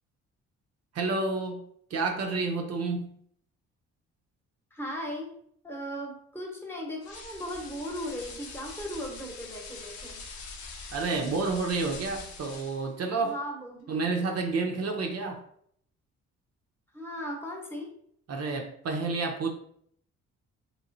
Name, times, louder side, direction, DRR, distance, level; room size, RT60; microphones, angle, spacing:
voice 1, 0.9-3.2 10.9-13.4 13.9-15.4 18.3-19.5, right 3 dB, 55° right, 2 dB, 0.6 m, -30 dB
voice 2, 4.7-5.4 5.6-10.2 13.2-14.0 16.9-17.9, equal, 10° left, -1 dB, 1.0 m, -37 dB
sound 1, 7.0-12.9, left 4 dB, 70° left, 0.7 m, -44 dB
3.0 x 3.0 x 2.6 m, 0.66 s
cardioid pair, 90°, 30 cm